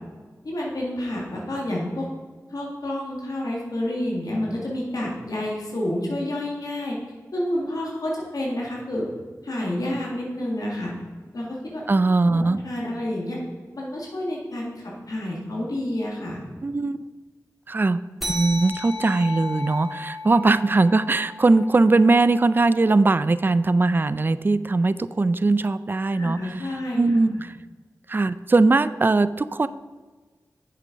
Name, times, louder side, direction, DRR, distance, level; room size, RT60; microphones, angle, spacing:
voice 1, 0.4-2.1 2.5-7.0 7.3-9.1 9.4-10.9 11.3-11.8 12.3-13.4 13.7-16.4 26.1-27.0, left 1 dB, 70° left, -4 dB, 1.9 m, -29 dB
voice 2, 11.9-12.6 16.6-17.0 17.7-18.0 18.3-26.6 27.0-27.5 28.1-29.7, right 3 dB, 30° right, 15 dB, 0.3 m, -20 dB
sound 1, 18.2-23.1, left 2 dB, ahead, 2.0 m, -35 dB
7.3 x 6.8 x 5.1 m, 1.4 s
cardioid pair, 45°, 7 cm